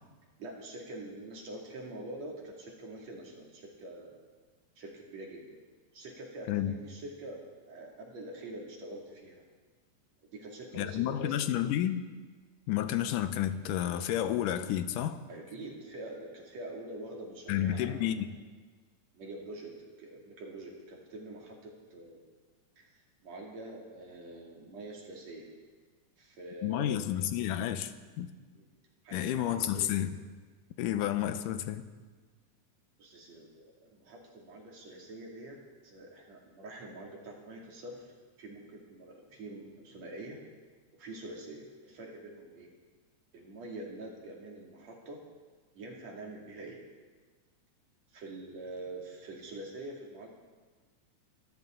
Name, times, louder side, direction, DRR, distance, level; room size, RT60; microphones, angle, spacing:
voice 1, 0.4-4.2 4.8-5.6 5.9-9.4 10.3-11.5 15.3-18.3 19.1-19.7 20.0-22.3 22.8-25.5 26.2-27.3 28.5-28.7 29.0-30.0 33.0-35.6 35.8-40.4 41.0-42.7 43.3-45.2 45.7-46.8 48.1-50.3, right 2 dB, 55° right, -1 dB, 3.7 m, -45 dB
voice 2, 10.7-12.1 12.7-15.2 17.5-18.4 26.6-28.3 29.1-30.1 30.8-31.9, left 11 dB, 85° left, 11 dB, 2.4 m, -31 dB
25.0 x 14.0 x 3.9 m, 1.4 s
omnidirectional pair, 3.6 m